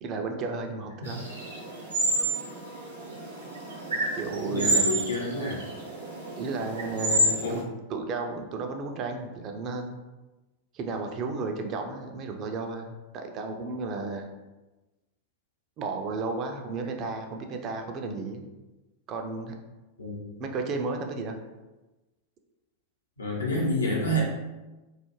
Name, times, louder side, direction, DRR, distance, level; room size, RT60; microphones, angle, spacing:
voice 1, 0.0-1.3 4.2-4.9 6.4-10.0 10.7-14.3 15.8-18.5 19.1-19.5 20.4-21.4, right 3 dB, 35° right, 4 dB, 0.3 m, -33 dB
sound 1, 1.0-7.6, right 1 dB, 75° right, 0.7 m, -29 dB
voice 2, 4.5-5.6 7.4-7.7 20.0-20.2 23.2-24.2, left 1 dB, 80° left, -3 dB, 0.6 m, -28 dB
2.3 x 2.1 x 3.0 m, 1.1 s
figure-of-eight pair, 90°, 0 cm